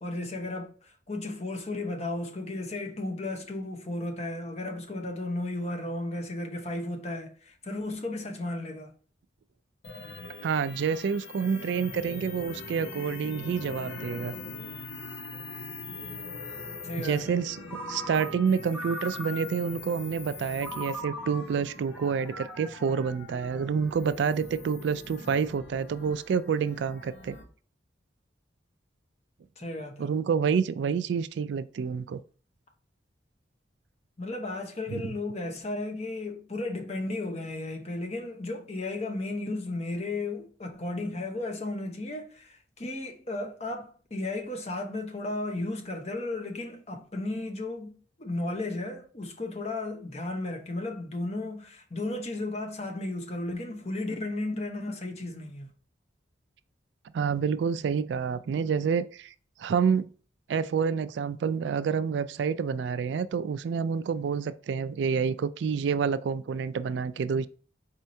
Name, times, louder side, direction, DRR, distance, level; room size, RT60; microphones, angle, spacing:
voice 1, 0.0-8.9 16.8-17.4 29.6-30.1 34.2-55.7, left 2 dB, 35° left, 0.9 m, -34 dB
sound 1, 9.8-27.4, left 3 dB, 75° left, 0.9 m, -43 dB
voice 2, 10.4-14.4 17.0-27.4 30.0-32.2 34.9-35.0 57.1-59.3 59.6-60.1 60.5-67.5, right 6 dB, 70° right, 0.3 m, -28 dB
Ringtone, 17.7-19.8 20.6-23.9, equal, 5° left, 0.8 m, -41 dB
4.5 x 4.2 x 2.7 m
head